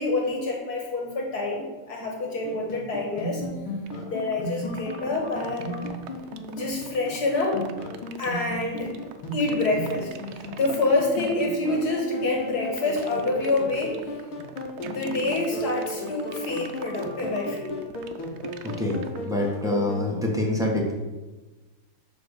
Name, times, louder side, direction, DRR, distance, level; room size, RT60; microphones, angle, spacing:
voice 1, 0.0-3.4 4.1-5.9 6.5-7.6 8.2-9.0 9.3-14.0 14.8-17.8, left 2 dB, 50° left, -1 dB, 1.9 m, -27 dB
sound 1, 2.5-20.0, left 1 dB, 90° left, 2.3 m, -36 dB
sound 2, 3.8-19.8, right 9 dB, 85° right, 1.4 m, -43 dB
voice 2, 18.8-20.9, left 1 dB, ahead, -3 dB, 0.9 m, -26 dB
8.6 x 3.5 x 6.6 m, 1.2 s
omnidirectional pair, 2.3 m